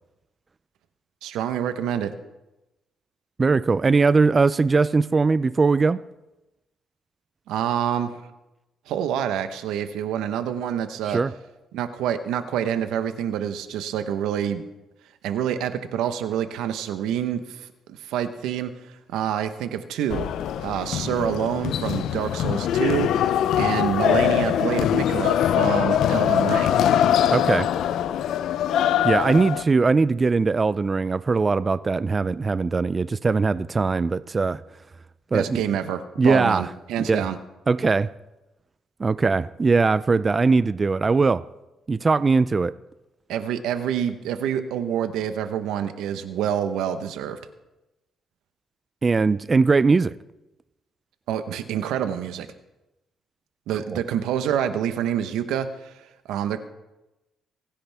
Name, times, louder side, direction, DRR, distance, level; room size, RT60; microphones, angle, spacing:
voice 1, 1.2-2.1 7.5-8.2 8.9-11.2 11.7-14.6 15.2-20.3 20.6-26.8 35.3-37.4 43.3-47.4 51.3-52.5 53.7-55.9 56.3-56.6, right 9 dB, 90° right, 1.0 m, -27 dB
voice 2, 3.4-6.0 11.1-11.3 27.3-27.7 29.0-34.6 35.3-35.6 36.2-36.6 37.1-37.3 37.7-38.1 39.0-41.4 41.9-42.7 49.0-50.2 53.9-54.0, right 4 dB, 30° right, 0.4 m, -20 dB
sound 1, 20.1-29.6, left 10 dB, 80° left, 0.5 m, -22 dB
28.0 x 10.0 x 3.5 m
cardioid pair, 90°, 0 cm